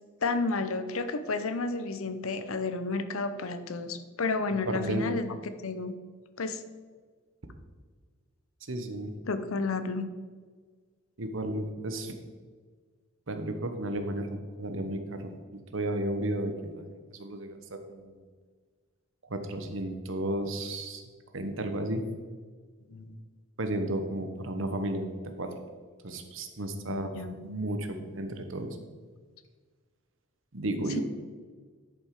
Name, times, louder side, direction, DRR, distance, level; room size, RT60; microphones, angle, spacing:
voice 1, 0.2-5.4 5.6-5.9 6.4-6.6 9.3-10.1 22.9-23.2 26.7-27.3, left 3 dB, 80° left, 10 dB, 0.7 m, -31 dB
voice 2, 4.5-5.1 8.7-9.1 11.2-12.2 13.3-18.2 19.2-21.0 21.3-22.0 23.6-25.1 25.4-25.5 26.0-28.8 30.5-31.0, right 1 dB, 65° right, 7 dB, 1.0 m, -33 dB
10.5 x 5.5 x 4.8 m, 1.5 s
head